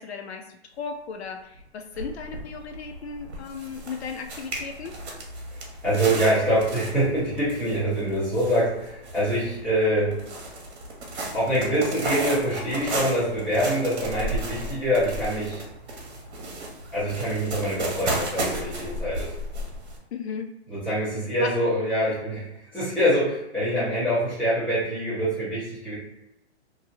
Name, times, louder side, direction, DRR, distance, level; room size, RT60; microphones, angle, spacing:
voice 1, 0.0-4.9 20.1-20.5 21.1-21.5 22.0-22.1, left 5 dB, 70° left, 4 dB, 0.5 m, -36 dB
sound 1, 1.6-1.7 1.9-20.0, right 1 dB, 65° right, 1.0 m, -34 dB
voice 2, 5.8-10.2 11.3-15.6 16.9-19.4 20.7-22.5 22.7-25.9, equal, 5° left, -14 dB, 0.8 m, -25 dB
2.7 x 2.7 x 2.6 m, 0.88 s
hypercardioid pair, 170°, 34 cm